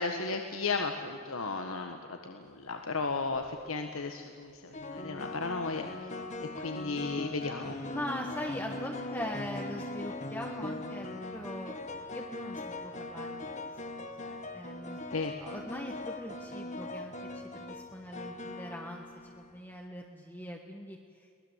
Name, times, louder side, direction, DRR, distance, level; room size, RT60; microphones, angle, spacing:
voice 1, 0.0-5.9 6.6-8.0 15.1-15.3, left 3 dB, 85° left, 5 dB, 1.5 m, -35 dB
sound 1, 3.1-3.5 4.7-19.6, left 2 dB, 35° left, 1.6 m, -40 dB
voice 2, 7.9-11.8 12.0-13.7 14.0-21.3, left 1 dB, 10° left, 0 dB, 1.4 m, -42 dB
24.0 x 19.5 x 8.2 m, 2.4 s
head